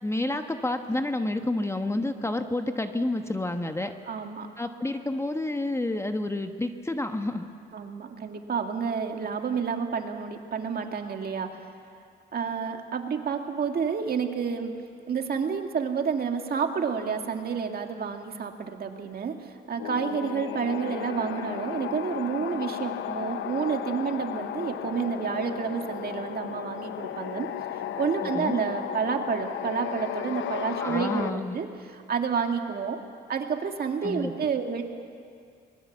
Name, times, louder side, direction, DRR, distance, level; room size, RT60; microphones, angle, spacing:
voice 1, 0.0-3.9 4.6-7.5 28.3-28.6 30.8-31.6 34.0-34.3, left 2 dB, 15° left, 7 dB, 1.2 m, -29 dB
voice 2, 4.1-4.5 7.7-11.7 12.3-14.7 15.1-27.5 28.0-31.7 31.9-33.0 33.3-34.8, right 6 dB, 50° right, 4 dB, 2.1 m, -29 dB
sound 1, 19.8-31.3, left 10 dB, 75° left, 0.9 m, -34 dB
25.0 x 21.0 x 7.4 m, 2.3 s
cardioid pair, 90°, 20 cm